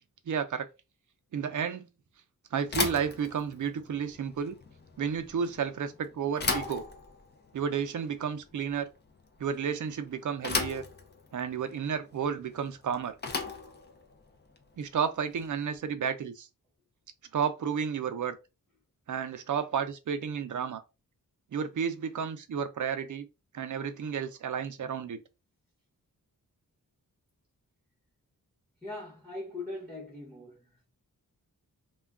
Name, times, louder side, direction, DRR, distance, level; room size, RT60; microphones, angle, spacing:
voice 1, 0.3-0.7 1.3-1.9 2.5-4.6 5.0-6.9 7.5-8.9 9.4-10.8 11.3-13.2 14.8-16.5 17.3-18.4 19.1-20.8 21.5-23.3 23.5-25.2, right 7 dB, 60° right, 0.5 m, -32 dB
Bicycle / Thump thud, 2.6-15.8, left 4 dB, 30° left, 0.5 m, -37 dB
voice 2, 28.8-30.9, left 2 dB, 5° left, 0.9 m, -41 dB
2.2 x 2.2 x 3.5 m
wide cardioid pair, 145°, 35 cm